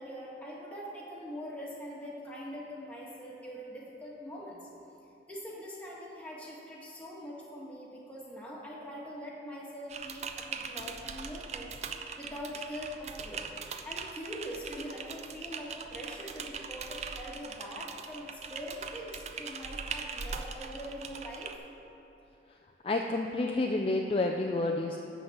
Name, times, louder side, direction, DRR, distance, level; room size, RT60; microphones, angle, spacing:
voice 1, 0.0-4.6 5.3-11.7 12.2-13.5 13.8-21.5, equal, 10° left, -5 dB, 1.4 m, -43 dB
Typing, 9.9-21.6, right 5 dB, 35° right, 0.4 m, -41 dB
voice 2, 22.8-25.0, left 2 dB, 30° left, 2 dB, 0.4 m, -29 dB
12.0 x 4.1 x 7.7 m, 2.9 s
head